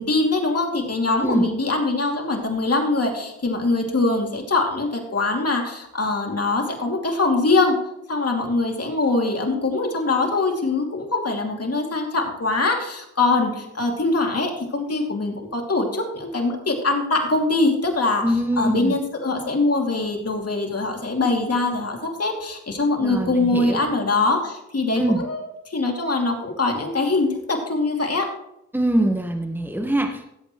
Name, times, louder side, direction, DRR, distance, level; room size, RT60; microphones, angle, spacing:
voice 1, 0.0-7.8 8.1-18.2 18.6-28.3, left 3 dB, 55° left, 2 dB, 2.7 m, -23 dB
voice 2, 18.2-19.0 23.0-23.9 25.0-25.2 28.7-30.3, right 1 dB, 5° right, 3 dB, 1.6 m, -23 dB
16.5 x 8.2 x 3.1 m, 0.82 s
cardioid pair, 45°, 29 cm